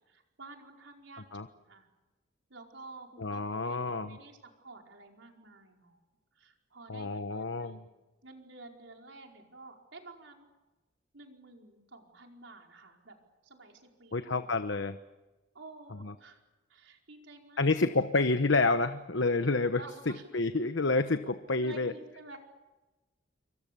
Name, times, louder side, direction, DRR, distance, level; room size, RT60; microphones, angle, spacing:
voice 1, 0.0-1.9 2.5-7.8 8.2-10.5 11.1-14.8 15.5-16.4 16.7-17.8 19.7-20.3 21.6-22.4, right 2 dB, 75° right, 2 dB, 4.9 m, -51 dB
voice 2, 3.2-4.2 6.9-7.8 14.1-14.9 16.0-16.1 17.6-19.8 20.3-21.9, left 3 dB, 70° left, 9 dB, 1.1 m, -28 dB
28.0 x 24.5 x 7.0 m, 1.1 s
head